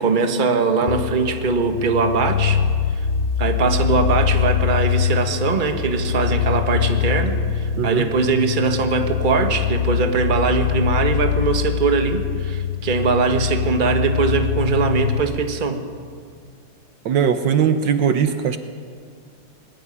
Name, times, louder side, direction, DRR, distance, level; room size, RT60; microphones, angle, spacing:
voice 1, 0.0-2.6 2.9-3.1 3.4-15.8, right 4 dB, 25° right, 6 dB, 1.3 m, -21 dB
sound 1, 0.9-15.2, left 8 dB, 65° left, 0.8 m, -23 dB
voice 2, 17.0-18.6, right 7 dB, 65° right, 9 dB, 1.5 m, -19 dB
21.0 x 14.5 x 9.9 m, 2.1 s
omnidirectional pair, 2.2 m